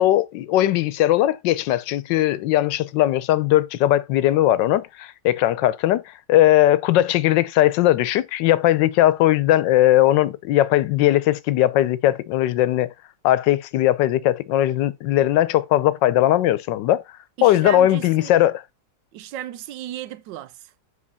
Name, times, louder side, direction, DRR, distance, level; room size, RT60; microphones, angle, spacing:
voice 1, 0.0-12.9 13.2-17.0 17.4-18.6, left 14 dB, 85° left, 1.3 m, -19 dB
voice 2, 17.4-18.4 19.1-20.7, right 12 dB, 90° right, 1.3 m, -35 dB
7.4 x 4.4 x 4.0 m
omnidirectional pair, 1.9 m